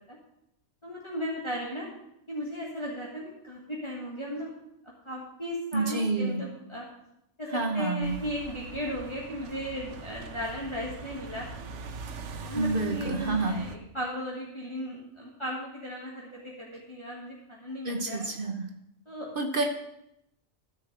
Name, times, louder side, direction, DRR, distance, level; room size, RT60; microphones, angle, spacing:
voice 1, 0.8-1.9 2.3-4.5 5.0-6.9 7.4-11.5 12.4-18.3 19.0-19.3, equal, 25° left, -4 dB, 1.6 m, -36 dB
voice 2, 5.7-6.5 7.5-8.2 12.6-13.6 17.8-18.7 19.4-19.6, right 3 dB, 50° right, 3 dB, 1.1 m, -28 dB
sound 1, 8.0-13.8, right 4 dB, 90° right, 1.1 m, -42 dB
12.5 x 4.7 x 6.5 m, 0.82 s
omnidirectional pair, 1.2 m